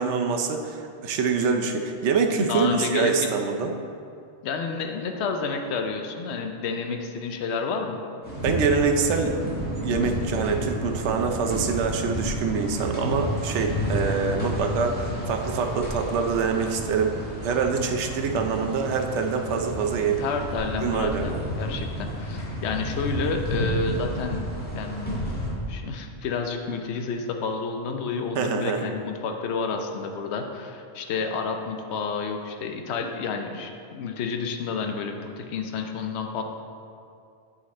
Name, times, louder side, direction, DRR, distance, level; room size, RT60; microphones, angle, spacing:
voice 1, 0.0-3.7 8.4-9.5 9.8-17.1 17.4-20.2 20.8-21.3 28.4-28.9, right 5 dB, 85° right, 4 dB, 0.9 m, -25 dB
voice 2, 2.4-3.3 4.4-8.0 20.1-24.4 24.7-25.1 25.7-36.4, left 4 dB, 75° left, 4 dB, 0.9 m, -30 dB
sound 1, 8.2-25.5, equal, 10° left, 1.6 m, -31 dB
8.7 x 4.1 x 4.1 m, 2.4 s
omnidirectional pair, 1.2 m